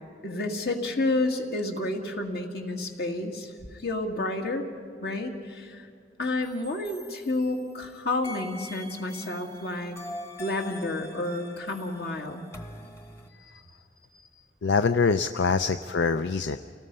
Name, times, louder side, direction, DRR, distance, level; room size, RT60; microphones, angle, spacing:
voice 1, 0.2-4.6 5.0-5.9 6.2-10.0 10.4-12.4, left 2 dB, 60° left, 3 dB, 2.1 m, -30 dB
sound 1, 6.4-7.8 8.2-13.3, left 1 dB, 15° left, 1.1 m, -44 dB
voice 2, 14.6-16.6, left 5 dB, 80° left, 10 dB, 0.5 m, -24 dB
29.5 x 18.5 x 5.4 m, 2.3 s
head